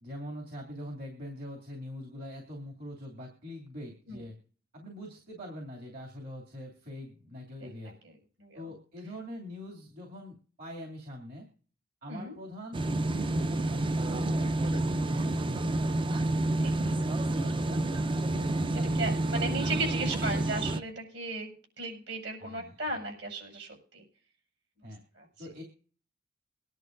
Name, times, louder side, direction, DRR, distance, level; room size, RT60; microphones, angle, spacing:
voice 1, 0.0-4.4 4.7-8.0 8.5-11.5 12.0-15.9 16.8-17.8 18.2-20.1 22.4-22.7 24.8-25.0 25.4-25.6, equal, 50° right, 1 dB, 2.6 m, -43 dB
voice 2, 7.6-8.7 12.1-12.3 16.5-16.7 18.9-21.5 21.8-24.0 25.1-25.5, right 2 dB, 65° right, 2 dB, 6.8 m, -36 dB
sound 1, 12.7-20.8, right 2 dB, 25° right, 0.5 m, -29 dB
22.5 x 11.0 x 2.6 m, 0.42 s
head